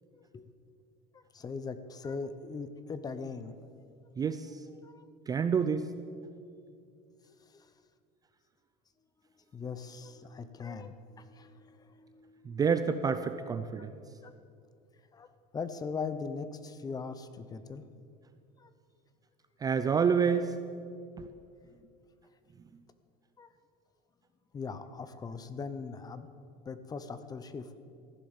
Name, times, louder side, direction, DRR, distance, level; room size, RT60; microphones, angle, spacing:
voice 1, 0.1-0.5 1.1-3.6 4.8-5.1 7.5-7.7 9.4-12.8 13.8-13.9 14.2-14.3 15.1-15.3 15.5-17.8 18.6-18.7 23.4-23.5 24.5-26.3 26.6-27.8, left 5 dB, 20° left, 12 dB, 0.7 m, -40 dB
voice 2, 4.2-4.5 5.3-5.9 12.5-13.9 19.6-20.5 21.2-21.3, right 6 dB, 20° right, 9 dB, 0.4 m, -28 dB
15.0 x 10.5 x 7.2 m, 2.5 s
cardioid pair, 150°, 20 cm